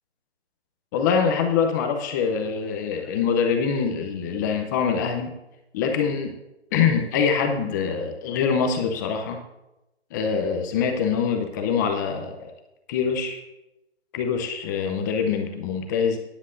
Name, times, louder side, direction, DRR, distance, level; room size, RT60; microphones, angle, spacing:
voice 1, 0.9-5.4 5.7-6.3 6.7-9.4 10.1-12.4 12.9-13.4 14.1-16.2, left 6 dB, 15° left, 4 dB, 0.6 m, -24 dB
15.5 x 9.9 x 2.6 m, 0.95 s
hypercardioid pair, 155°, 33 cm